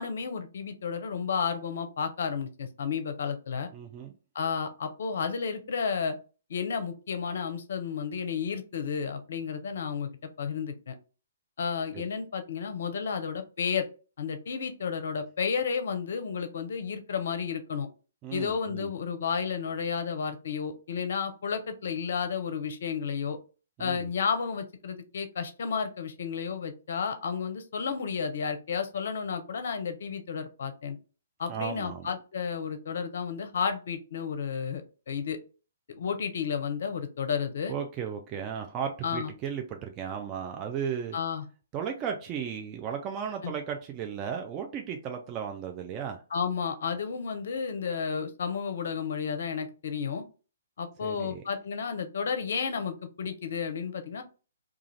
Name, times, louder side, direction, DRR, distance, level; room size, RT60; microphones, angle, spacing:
voice 1, 0.0-3.7 4.3-6.2 6.5-10.1 10.4-10.9 11.6-13.9 14.2-17.9 18.3-23.4 23.8-31.0 31.4-35.4 35.9-37.8 39.0-39.3 41.1-41.4 43.4-43.5 46.3-50.2 50.8-54.2, left 6 dB, 65° left, 8 dB, 0.6 m, -32 dB
voice 2, 3.7-4.1 18.2-18.9 23.8-24.1 31.5-32.1 37.7-41.2 41.7-46.2 51.0-51.4, right 7 dB, 25° right, 3 dB, 0.4 m, -35 dB
2.4 x 2.3 x 3.1 m, 0.35 s
hypercardioid pair, 130°, 0 cm